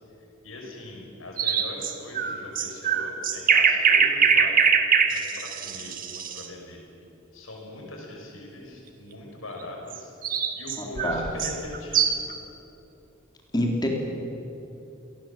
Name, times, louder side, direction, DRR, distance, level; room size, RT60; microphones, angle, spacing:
voice 1, 0.4-4.6 5.1-6.8 7.3-10.1 10.5-12.2, left 2 dB, 85° left, 0 dB, 6.3 m, -40 dB
sound 1, 1.4-6.5 9.9-12.3, right 6 dB, 45° right, 1.7 m, -22 dB
voice 2, 10.8-11.2 13.5-13.9, left 1 dB, 20° left, 0 dB, 3.7 m, -26 dB
27.0 x 19.0 x 7.5 m, 2.8 s
head